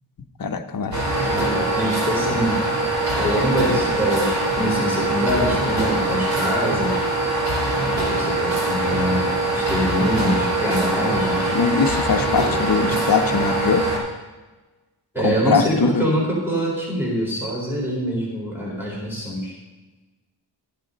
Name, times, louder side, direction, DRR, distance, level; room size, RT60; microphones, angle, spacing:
voice 1, 0.4-1.0 11.5-13.9 15.2-16.1, left 5 dB, 50° left, 8 dB, 0.9 m, -21 dB
sound 1, 0.9-14.0, right 2 dB, 35° right, 4.1 m, -23 dB
voice 2, 1.8-2.6 3.1-7.1 8.1-11.5 15.1-19.6, equal, 5° right, -5 dB, 4.4 m, -24 dB
14.0 x 9.1 x 4.0 m, 1.2 s
wide cardioid pair, 110°, 45 cm